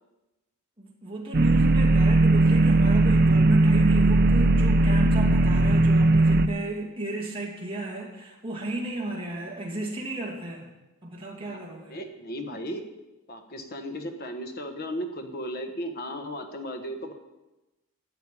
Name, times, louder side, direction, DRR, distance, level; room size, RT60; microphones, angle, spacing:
voice 1, 0.8-10.7 11.0-12.0, right 1 dB, 25° right, -2 dB, 2.5 m, -33 dB
sound 1, 1.3-6.5, right 2 dB, 45° right, 0.5 m, -19 dB
voice 2, 11.9-12.8 13.3-17.1, equal, 45° left, 5 dB, 1.2 m, -35 dB
12.0 x 6.7 x 9.8 m, 1.0 s
head